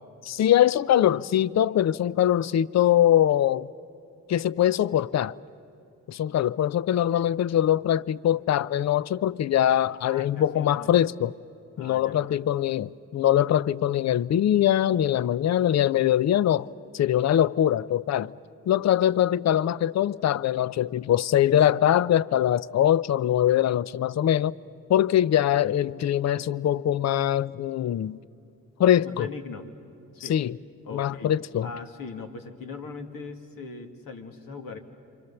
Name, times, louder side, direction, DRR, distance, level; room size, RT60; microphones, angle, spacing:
voice 1, 0.2-3.7 4.3-5.3 6.1-11.3 11.8-16.7 16.9-18.3 18.7-24.5 24.9-28.2 28.8-29.3 30.2-30.6 30.9-31.7, left 11 dB, 45° left, 0.6 m, -22 dB
voice 2, 10.1-10.9 11.8-12.4 29.0-29.7 30.1-30.4 30.8-31.3 31.6-34.8, left 4 dB, 65° left, 2.3 m, -40 dB
27.5 x 25.5 x 7.0 m
hypercardioid pair, 50°, 36 cm